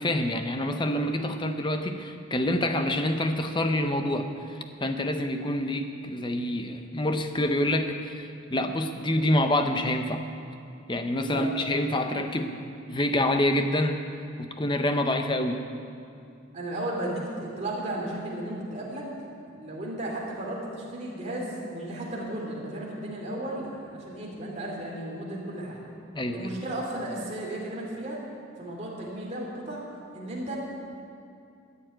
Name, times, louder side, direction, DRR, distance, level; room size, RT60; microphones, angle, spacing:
voice 1, 0.0-10.2 10.9-12.6 12.9-14.0 14.4-15.6 26.1-26.5, left 1 dB, 20° left, 7 dB, 0.6 m, -27 dB
voice 2, 16.5-19.0 19.5-25.9 26.3-28.2 28.6-29.8 30.1-30.6, right 1 dB, 30° right, -3 dB, 2.7 m, -34 dB
13.5 x 7.0 x 8.9 m, 2.5 s
head